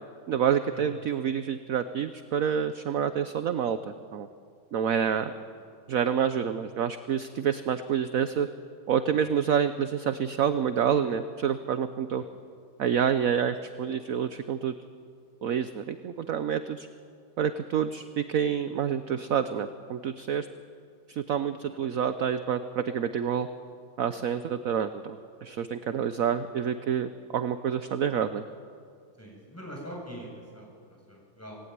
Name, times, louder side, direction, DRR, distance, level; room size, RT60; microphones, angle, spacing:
voice 1, 0.3-4.3 4.7-5.3 5.9-8.5 8.9-12.2 12.8-14.7 15.4-16.9 17.4-20.5 21.1-23.5 24.0-28.4, right 8 dB, 60° right, 10 dB, 0.9 m, -28 dB
voice 2, 29.2-31.6, equal, 5° left, -2 dB, 7.3 m, -44 dB
26.5 x 19.0 x 9.6 m, 2.3 s
omnidirectional pair, 2.2 m